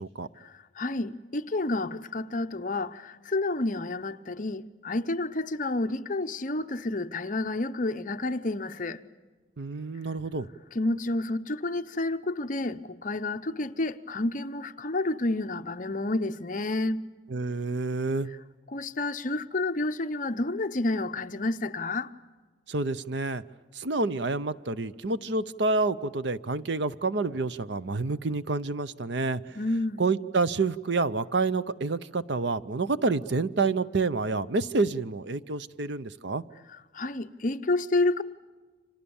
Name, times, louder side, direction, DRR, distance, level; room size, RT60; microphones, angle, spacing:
voice 1, 0.4-9.0 10.7-17.0 18.7-22.1 29.6-30.0 36.9-38.2, left 2 dB, 40° left, 0.8 m, -30 dB
voice 2, 9.6-10.5 17.3-18.3 22.7-23.4 23.7-29.6 30.0-36.4, right 3 dB, 65° right, 0.7 m, -28 dB
30.0 x 26.0 x 7.1 m
head